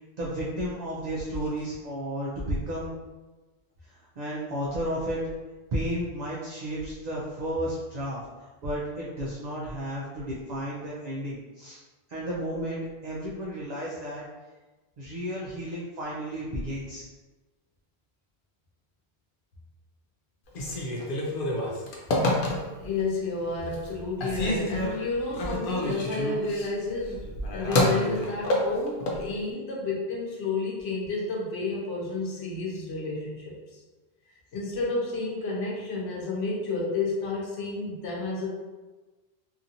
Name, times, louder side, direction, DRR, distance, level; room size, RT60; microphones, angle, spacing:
voice 1, 0.2-2.9 3.8-5.2 5.7-11.8 12.1-14.2 15.0-17.1, right 1 dB, 50° right, -5 dB, 0.5 m, -33 dB
Telephone, 20.5-23.0 23.4-23.9 24.2-29.2, left 1 dB, 60° left, 0.7 m, -28 dB
voice 2, 22.8-33.8 34.5-38.5, left 3 dB, 85° left, -3 dB, 1.0 m, -31 dB
2.7 x 2.7 x 2.5 m, 1.2 s
omnidirectional pair, 1.1 m